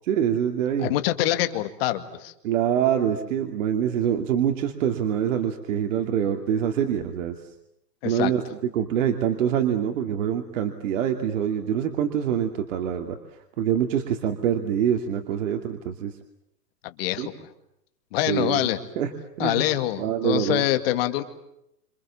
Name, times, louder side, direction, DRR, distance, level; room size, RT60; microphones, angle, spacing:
voice 1, 0.0-0.9 2.4-7.3 8.0-8.4 8.7-13.2 13.6-16.1 17.2-17.3 18.3-18.6 19.0-19.1 19.4-19.6 20.0-20.6, right 9 dB, 50° right, 5 dB, 2.7 m, -25 dB
voice 2, 0.8-2.3 8.0-8.3 16.8-17.5 18.1-18.8 19.4-21.2, left 14 dB, 35° left, 9 dB, 2.4 m, -25 dB
29.5 x 27.5 x 7.4 m, 0.78 s
hypercardioid pair, 155°, 48 cm